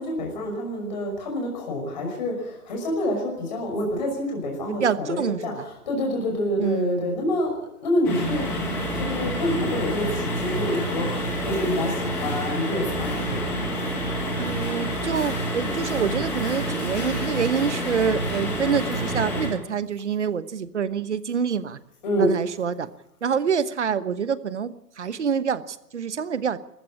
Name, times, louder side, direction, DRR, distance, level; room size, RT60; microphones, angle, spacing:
voice 1, 0.0-8.5 8.9-13.4 22.0-22.3, left 1 dB, 30° left, 1 dB, 5.8 m, -27 dB
voice 2, 4.7-5.6 6.6-7.2 14.4-21.8 22.2-22.9 23.2-26.6, right 6 dB, 50° right, 15 dB, 1.1 m, -26 dB
sound 1, 8.0-19.5, equal, 5° left, 1.3 m, -28 dB
22.0 x 15.0 x 8.6 m, 0.87 s
hypercardioid pair, 175°, 46 cm